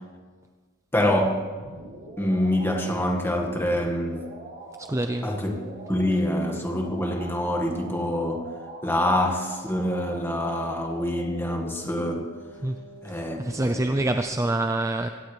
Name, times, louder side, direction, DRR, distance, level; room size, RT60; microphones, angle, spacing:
voice 1, 0.9-1.4 2.2-4.2 5.2-8.5 8.8-12.3 13.0-14.1, left 1 dB, 10° left, 1 dB, 1.8 m, -26 dB
sound 1, 1.4-14.2, right 1 dB, 50° right, 4.8 m, -43 dB
voice 2, 4.8-5.3 12.6-12.8 13.1-15.1, right 1 dB, 15° right, 7 dB, 0.5 m, -26 dB
23.5 x 17.5 x 3.4 m, 1.5 s
head